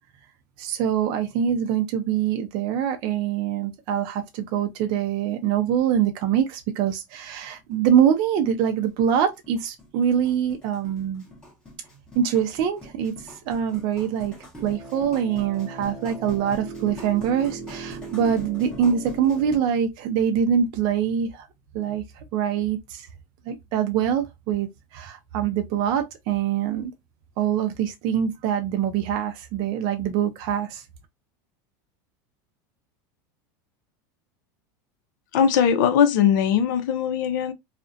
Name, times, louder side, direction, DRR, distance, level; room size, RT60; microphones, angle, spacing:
voice 1, 0.6-11.3 12.1-14.3 14.6-21.5 21.7-23.1 23.5-26.9 27.4-30.8, right 8 dB, 50° right, 0.5 m, -24 dB
sound 1, 7.6-7.7 7.9-8.0 8.4-19.6, right 1 dB, 10° left, 0.9 m, -39 dB
voice 2, 35.3-37.5, left 8 dB, 75° left, 0.5 m, -20 dB
2.4 x 2.1 x 2.5 m
supercardioid pair, 150°, 10 cm